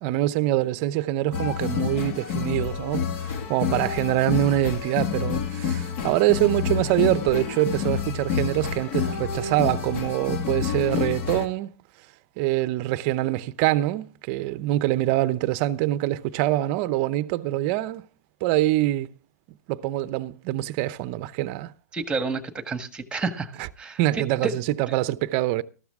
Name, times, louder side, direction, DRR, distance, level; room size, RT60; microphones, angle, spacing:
voice 1, 0.0-11.7 12.4-18.1 18.4-19.1 19.7-21.7 23.6-23.7 24.0-25.6, right 15 dB, 40° right, 0.7 m, -24 dB
sound 1, 1.3-11.4, left 7 dB, 50° left, 2.0 m, -28 dB
voice 2, 21.9-23.5 23.8-24.5, right 4 dB, 10° right, 1.6 m, -30 dB
13.5 x 13.0 x 3.6 m
hypercardioid pair, 120°, 9 cm